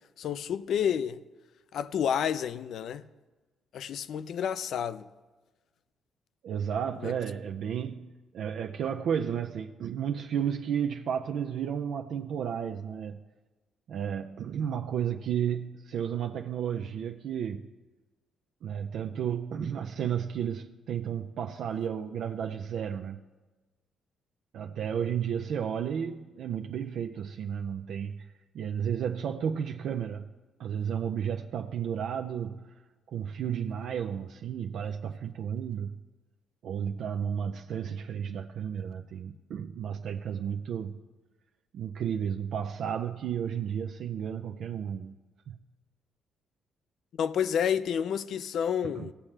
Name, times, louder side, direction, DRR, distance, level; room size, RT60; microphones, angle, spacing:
voice 1, 0.2-1.2 1.7-3.0 3.7-5.1 7.0-7.1 47.2-49.1, left 8 dB, 70° left, 0.4 m, -29 dB
voice 2, 6.4-8.1 8.3-13.2 13.9-17.7 18.6-23.2 24.5-28.3 28.5-30.3 30.6-32.6 33.1-35.9 36.6-41.0 41.7-45.2 45.5-45.6 48.9-49.0, right 8 dB, 70° right, 0.4 m, -32 dB
17.0 x 7.2 x 3.3 m
cardioid pair, 90°, 0 cm